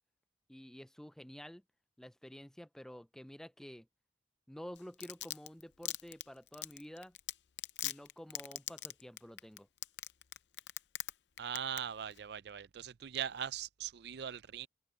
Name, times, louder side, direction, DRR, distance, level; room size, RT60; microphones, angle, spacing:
voice 1, 0.5-1.6 2.0-3.9 4.5-7.2 7.8-9.7, equal, 5° left, 0.3 m, -50 dB
Domestic sounds home sounds, 4.8-11.1 11.4-11.8 12.1-12.2, left 14 dB, 70° left, 0.6 m, -39 dB
voice 2, 11.4-14.7, right 9 dB, 60° right, 0.5 m, -40 dB
open air
head